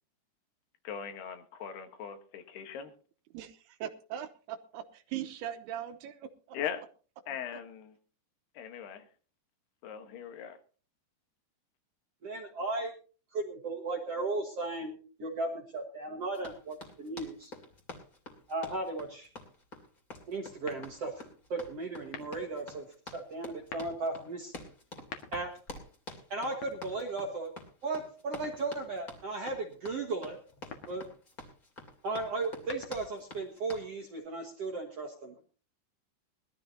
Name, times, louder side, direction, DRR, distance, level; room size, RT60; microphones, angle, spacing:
voice 1, 0.8-2.9 6.5-6.8 7.3-7.9 8.6-9.0 9.8-10.6, left 8 dB, 75° left, 7 dB, 3.3 m, -40 dB
voice 2, 3.3-6.6, right 10 dB, 75° right, 8 dB, 2.7 m, -40 dB
voice 3, 12.2-12.9 13.3-17.5 18.5-19.3 20.3-24.6 25.3-25.5 26.3-27.5 27.8-30.4 30.9-31.1 32.0-35.4, right 3 dB, 55° right, 2 dB, 1.8 m, -36 dB
Run, 16.3-33.9, left 2 dB, 25° left, 2.4 m, -48 dB
sound 1, 20.6-21.2 22.0-22.6 23.5-24.0 24.9-25.6 26.5-27.4 28.4-29.0 30.5-31.1 32.4-33.2, left 6 dB, 55° left, 1.9 m, -47 dB
21.0 x 13.0 x 2.8 m, 0.38 s
omnidirectional pair, 4.9 m